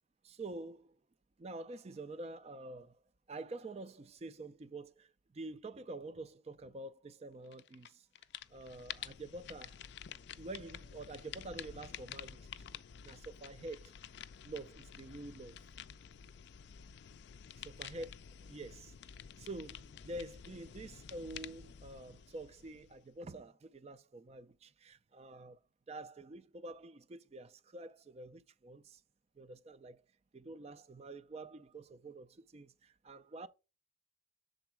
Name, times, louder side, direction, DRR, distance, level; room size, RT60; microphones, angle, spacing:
voice 1, 0.2-1.0 1.4-3.0 3.3-8.1 8.5-9.8 10.4-12.5 13.0-13.9 14.4-15.6 17.8-18.1 18.5-19.0 19.4-25.6 25.9-29.0 29.4-30.0 30.3-33.5, right 2 dB, 30° right, 0.3 m, -47 dB
sound 1, 7.5-7.9 8.2-23.2, left 9 dB, 60° left, 0.3 m, -50 dB
7.0 x 3.8 x 4.5 m
head